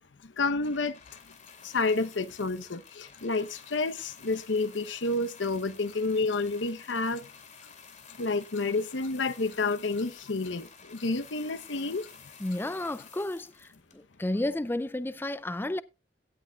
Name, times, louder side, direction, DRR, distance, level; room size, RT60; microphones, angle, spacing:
voice 1, 0.4-1.0 1.6-7.2 8.2-12.1, left 3 dB, 85° left, 0.9 m, -29 dB
sound 1, 0.7-14.3 15.1-15.2, left 6 dB, 40° left, 2.6 m, -52 dB
voice 2, 12.4-15.8, left 1 dB, 10° left, 0.4 m, -32 dB
17.0 x 8.2 x 2.3 m
head